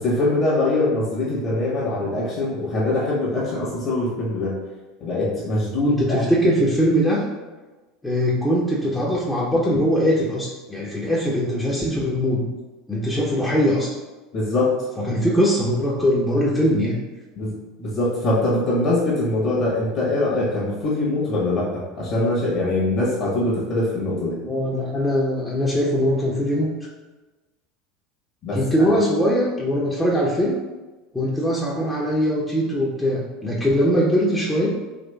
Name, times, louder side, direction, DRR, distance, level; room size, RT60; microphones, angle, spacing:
voice 1, 0.0-4.6 5.0-6.2 14.3-14.7 15.0-15.1 17.4-17.5 17.8-24.4 28.4-28.6, left 2 dB, 45° left, -6 dB, 1.0 m, -23 dB
voice 2, 5.9-7.2 8.0-12.5 12.9-13.9 15.0-17.0 24.4-26.7 28.5-30.6 31.1-34.7, equal, 10° left, -5 dB, 0.6 m, -21 dB
3.9 x 2.9 x 2.2 m, 1.2 s
figure-of-eight pair, 75°, 0 cm